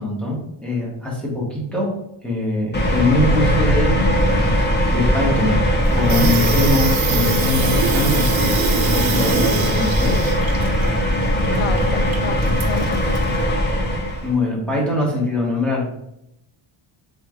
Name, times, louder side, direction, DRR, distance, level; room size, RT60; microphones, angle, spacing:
voice 1, 0.0-1.9 2.2-3.9 4.2-4.5 4.9-5.6 5.9-8.2 8.7-10.2 14.2-15.9, left 2 dB, ahead, -4 dB, 1.3 m, -22 dB
sound 1, 2.7-14.3, equal, 20° left, 0.8 m, -19 dB
Water tap faucet / Sink (filling or washing), 5.8-13.4, right 5 dB, 65° right, 0.8 m, -26 dB
voice 2, 11.4-13.9, left 7 dB, 85° left, 9 dB, 0.7 m, -32 dB
3.7 x 3.4 x 3.6 m, 0.81 s
wide cardioid pair, 145°, 50 cm